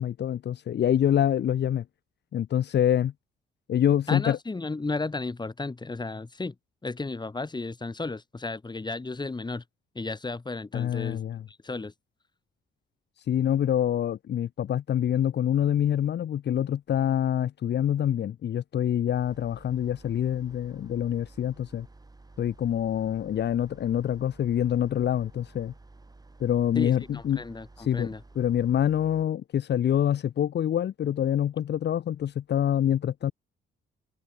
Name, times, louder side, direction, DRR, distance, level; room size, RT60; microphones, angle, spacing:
voice 1, 0.0-1.8 2.3-3.1 3.7-4.4 10.7-11.4 13.2-21.9 22.4-25.7 26.4-27.4 27.8-28.1 28.3-33.3, left 10 dB, 60° left, 1.3 m, -26 dB
voice 2, 4.1-6.5 6.8-9.6 9.9-11.2 11.5-11.9 26.7-28.2, left 3 dB, 20° left, 6.2 m, -34 dB
sound 1, 19.1-29.3, right 3 dB, 20° right, 6.5 m, -52 dB
cardioid pair, 90°, 20 cm